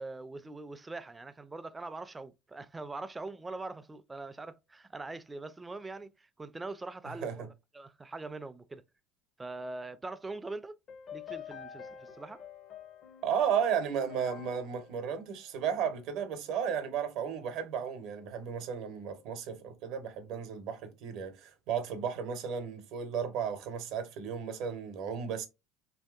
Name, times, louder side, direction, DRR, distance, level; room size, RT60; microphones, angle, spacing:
voice 1, 0.0-7.5 7.7-8.8 9.4-10.7 11.1-12.4, right 3 dB, 15° right, 0.3 m, -42 dB
voice 2, 7.0-7.4 13.2-25.5, right 7 dB, 65° right, 0.7 m, -34 dB
sound 1, 10.9-16.2, left 8 dB, 45° left, 0.5 m, -48 dB
3.0 x 2.7 x 2.3 m
supercardioid pair, 100°, 0 cm